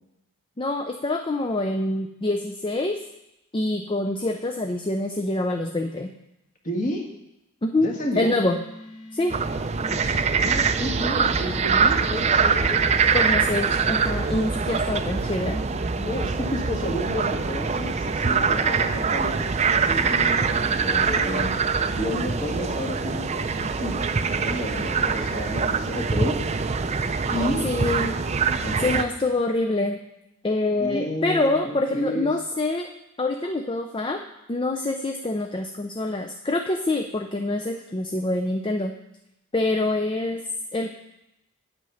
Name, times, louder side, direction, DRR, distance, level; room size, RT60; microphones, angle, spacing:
voice 1, 0.6-3.0 3.5-6.1 7.6-7.9 8.2-8.6 9.1-9.4 13.1-15.6 27.6-28.2 28.8-30.0 30.4-32.9 33.2-34.2 34.5-38.9 39.5-41.0, left 2 dB, 25° left, 5 dB, 0.5 m, -25 dB
voice 2, 6.6-7.1 7.8-8.4 10.3-12.8 15.9-19.4 19.8-21.5 21.9-26.4 27.3-27.7 28.6-29.0 30.7-32.3, left 1 dB, 40° left, 1 dB, 1.7 m, -31 dB
sound 1, 8.4-22.2, left 1 dB, 80° left, 2.2 m, -45 dB
sound 2, 9.3-29.0, right 5 dB, 30° right, 0.4 m, -24 dB
9.4 x 8.0 x 5.6 m, 0.88 s
head